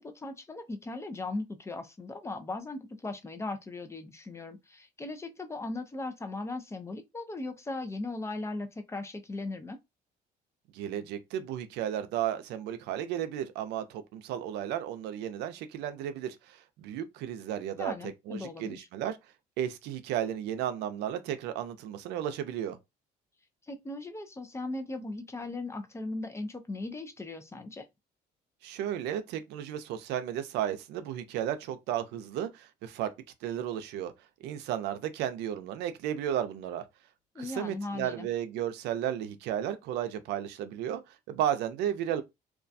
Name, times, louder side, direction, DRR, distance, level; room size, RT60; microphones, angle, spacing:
voice 1, 0.0-9.8 17.8-18.9 23.7-27.8 37.3-38.3, left 2 dB, 15° left, 0.4 m, -38 dB
voice 2, 10.7-17.9 18.3-19.2 19.6-22.8 28.6-33.1 33.4-34.1 34.4-36.8 37.4-42.2, right 10 dB, 85° right, 0.4 m, -34 dB
2.3 x 2.2 x 2.5 m
cardioid pair, 110°, 17 cm